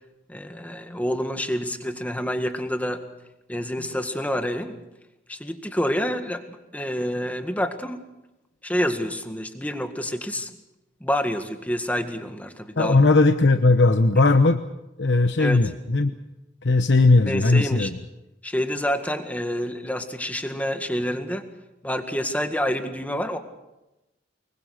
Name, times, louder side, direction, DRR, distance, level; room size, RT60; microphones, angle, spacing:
voice 1, 0.3-3.0 3.5-4.8 5.3-8.0 8.6-10.5 11.0-13.0 15.4-15.6 17.3-17.9 18.4-21.4 21.8-23.4, equal, 10° left, 7 dB, 1.8 m, -28 dB
voice 2, 12.8-14.6 15.0-16.1 16.6-17.9, left 3 dB, 65° left, 8 dB, 1.0 m, -18 dB
25.0 x 22.5 x 6.6 m, 0.96 s
head